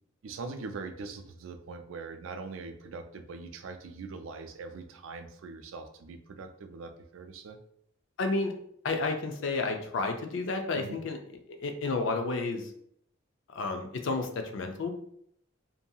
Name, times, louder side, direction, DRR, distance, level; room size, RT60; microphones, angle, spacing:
voice 1, 0.2-7.6 10.7-11.0, right 4 dB, 80° right, 7 dB, 0.4 m, -42 dB
voice 2, 8.2-8.5 8.8-11.2 11.5-12.7 13.5-14.9, left 3 dB, 70° left, 5 dB, 0.4 m, -31 dB
2.6 x 2.3 x 2.7 m, 0.69 s
head